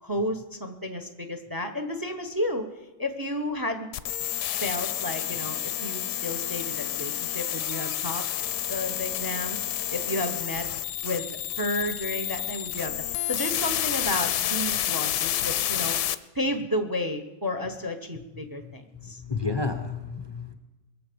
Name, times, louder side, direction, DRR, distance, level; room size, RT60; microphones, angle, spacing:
voice 1, 0.0-2.7 3.0-3.9 4.6-8.3 8.7-9.6 9.9-10.7 11.0-11.3 11.6-16.0 16.3-19.2, left 1 dB, 15° right, 7 dB, 0.7 m, -32 dB
sound 1, 3.9-16.1, left 12 dB, 70° left, 1.1 m, -29 dB
voice 2, 18.4-20.5, left 4 dB, 30° left, 5 dB, 0.4 m, -32 dB
21.5 x 7.6 x 6.9 m, 1.1 s
omnidirectional pair, 1.9 m